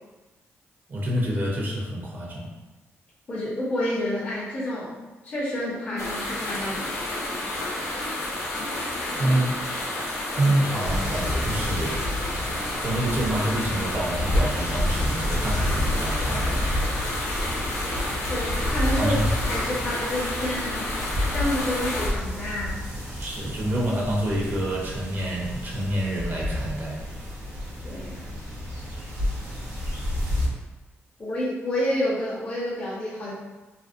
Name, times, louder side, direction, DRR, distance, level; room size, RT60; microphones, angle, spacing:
voice 1, 0.9-2.5 9.2-9.6 10.3-12.1 12.8-16.8 19.0-19.2 23.2-27.0, right 1 dB, 45° right, -3 dB, 0.5 m, -27 dB
voice 2, 3.3-4.9 5.2-7.0 9.2-9.4 18.3-19.2 19.5-20.9 21.3-22.8 27.8-28.3 31.2-33.3, left 1 dB, 30° left, -9 dB, 0.6 m, -29 dB
sound 1, 6.0-22.1, left 1 dB, 85° left, 0.5 m, -30 dB
sound 2, 10.8-30.5, left 1 dB, 80° right, 0.7 m, -30 dB
2.5 x 2.0 x 2.4 m, 1.1 s
cardioid pair, 115°, 5 cm